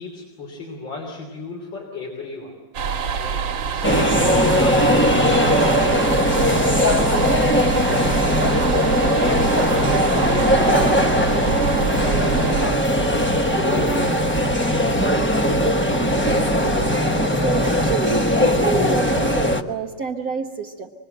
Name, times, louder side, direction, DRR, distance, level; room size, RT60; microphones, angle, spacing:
voice 1, 0.0-2.6 3.1-7.4 8.1-13.4 13.6-15.1, left 3 dB, 75° left, -1 dB, 4.0 m, -34 dB
sound 1, 2.7-12.7, right 6 dB, 85° right, 1.6 m, -26 dB
sound 2, 3.8-19.6, equal, 10° left, 0.6 m, -19 dB
voice 2, 16.0-20.9, right 5 dB, 55° right, 2 dB, 1.4 m, -29 dB
26.5 x 21.5 x 7.9 m, 1.5 s
omnidirectional pair, 2.0 m